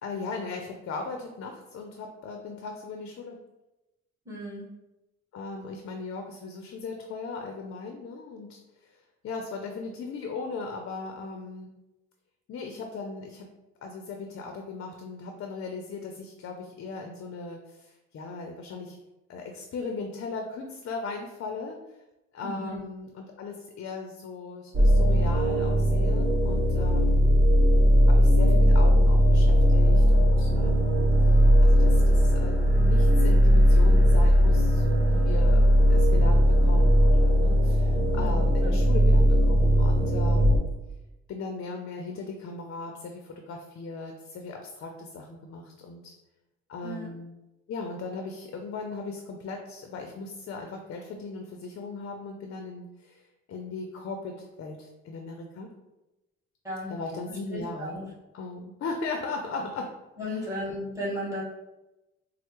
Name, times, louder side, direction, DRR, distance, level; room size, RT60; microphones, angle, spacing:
voice 1, 0.0-3.4 5.3-11.7 12.5-13.5 13.8-19.0 19.3-21.8 22.3-27.3 28.1-40.7 41.3-46.1 46.7-47.4 47.7-55.7 56.9-58.0 58.3-59.9 60.3-60.5, left 3 dB, 50° left, 3 dB, 0.5 m, -38 dB
voice 2, 4.2-4.7 22.4-22.8 37.9-38.8 46.8-47.1 56.6-56.9 57.3-58.0 60.2-61.4, left 1 dB, 10° right, -7 dB, 1.4 m, -35 dB
sound 1, 24.7-40.6, equal, 40° right, 0.7 m, -19 dB
4.3 x 2.0 x 2.9 m, 1.0 s
cardioid pair, 90°, 30 cm